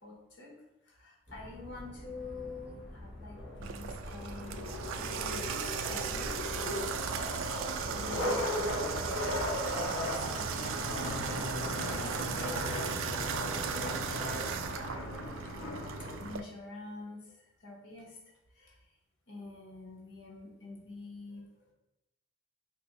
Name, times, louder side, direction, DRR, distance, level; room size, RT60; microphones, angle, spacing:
voice 1, 0.0-0.5 0.9-8.9 9.3-12.9 13.5-14.6 16.2-18.2 18.5-18.8 19.3-21.4, left 2 dB, 65° left, -3 dB, 1.1 m, -47 dB
sound 1, 1.3-9.1, left 1 dB, ahead, 1.2 m, -48 dB
sound 2, 3.4-16.4, left 1 dB, 80° left, 0.6 m, -37 dB
Water tap faucet / Bathtub (filling or washing), 3.6-16.4, right 7 dB, 90° right, 0.3 m, -37 dB
2.7 x 2.7 x 4.0 m, 0.96 s
head